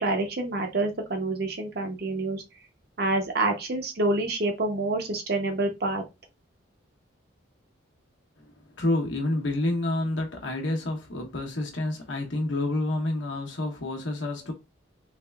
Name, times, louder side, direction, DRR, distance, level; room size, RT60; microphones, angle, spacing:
voice 1, 0.0-2.4 3.0-6.0, right 2 dB, 50° right, 0.7 m, -27 dB
voice 2, 8.4-14.5, left 2 dB, 75° left, 0.9 m, -29 dB
3.4 x 3.2 x 2.3 m
head